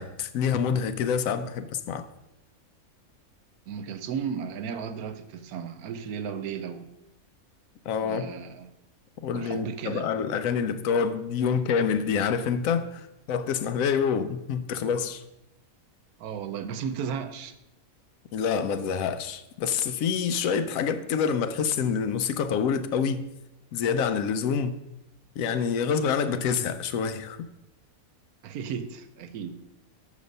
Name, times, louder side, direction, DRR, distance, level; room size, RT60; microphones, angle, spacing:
voice 1, 0.0-2.1 7.9-8.3 9.2-15.2 18.3-23.3 23.7-24.8 25.4-27.5, left 6 dB, 75° left, 0.9 m, -27 dB
voice 2, 3.7-6.9 8.0-8.7 9.3-10.1 16.2-17.5 28.4-29.5, right 7 dB, 90° right, 1.2 m, -34 dB
6.7 x 5.1 x 5.3 m
omnidirectional pair, 1.5 m